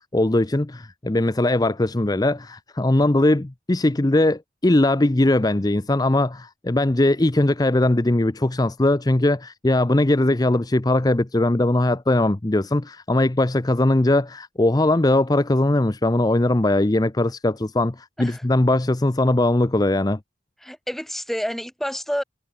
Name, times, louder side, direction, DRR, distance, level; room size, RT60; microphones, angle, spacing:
voice 1, 0.1-20.2, left 1 dB, 20° left, 0.7 m, -20 dB
voice 2, 20.6-22.2, equal, ahead, 4.3 m, -28 dB
head